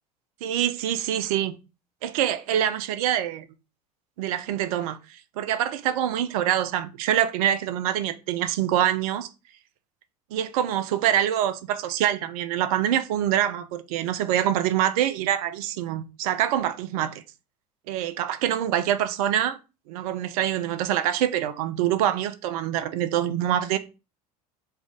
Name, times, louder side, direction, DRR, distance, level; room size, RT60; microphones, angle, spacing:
voice 1, 0.4-1.6 2.0-3.4 4.2-9.3 10.3-17.2 17.9-19.6 19.9-23.8, right 11 dB, 65° right, 0.5 m, -25 dB
3.5 x 2.5 x 3.3 m
hypercardioid pair, 75°, 20 cm